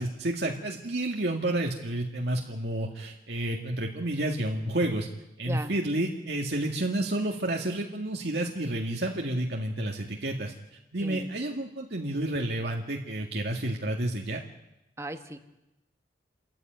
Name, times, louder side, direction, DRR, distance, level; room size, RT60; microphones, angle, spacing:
voice 1, 0.0-5.1 5.4-10.5 10.9-14.4, right 1 dB, 65° right, 0 dB, 2.1 m, -30 dB
voice 2, 11.0-11.3 15.0-15.4, right 1 dB, 15° right, 7 dB, 1.5 m, -37 dB
28.5 x 14.0 x 9.4 m, 0.94 s
head